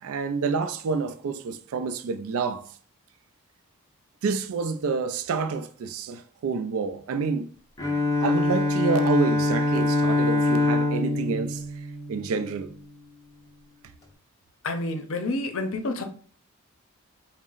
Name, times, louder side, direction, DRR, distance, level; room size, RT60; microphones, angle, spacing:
voice 1, 0.0-2.7 4.2-7.5 8.2-11.6 12.1-12.7, right 5 dB, 70° right, 0.3 m, -28 dB
Bowed string instrument, 7.8-12.7, left 2 dB, 15° left, 0.5 m, -24 dB
voice 2, 14.6-16.0, left 2 dB, 65° left, 0.6 m, -29 dB
4.0 x 2.1 x 3.7 m
head